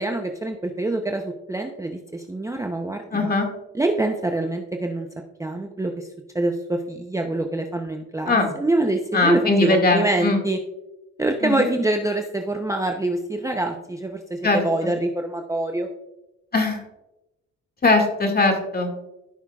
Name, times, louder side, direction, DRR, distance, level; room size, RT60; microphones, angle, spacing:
voice 1, 0.0-3.4 3.7-5.1 5.4-6.1 6.3-10.6 11.2-15.9, right 2 dB, 10° right, 3 dB, 0.7 m, -25 dB
voice 2, 3.1-3.5 8.3-8.5 9.1-10.4 11.4-11.7 14.4-14.6 16.5-16.8 17.8-18.9, left 2 dB, 30° left, 3 dB, 2.1 m, -20 dB
16.0 x 5.6 x 2.4 m, 0.95 s
cardioid pair, 90°, 30 cm